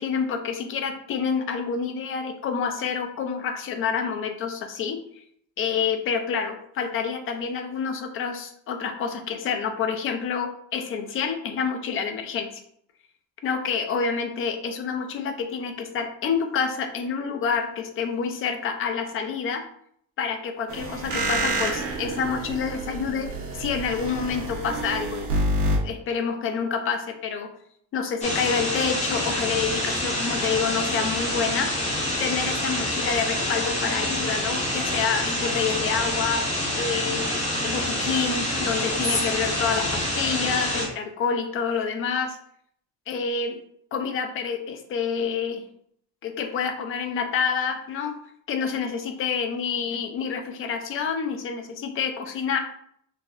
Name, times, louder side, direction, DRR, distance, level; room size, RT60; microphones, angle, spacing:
voice 1, 0.0-5.2 5.6-12.6 13.4-19.6 20.2-25.3 25.8-27.5 27.9-31.7 32.2-36.4 36.8-42.4 43.1-43.6 43.9-45.6 46.2-48.2 48.5-52.6, left 6 dB, 40° left, 6 dB, 0.4 m, -28 dB
sound 1, 20.7-25.8, right 1 dB, 60° right, 1.1 m, -28 dB
sound 2, 28.2-40.9, left 1 dB, 20° left, 0.8 m, -27 dB
3.9 x 2.7 x 2.5 m, 0.66 s
cardioid pair, 165°, 33 cm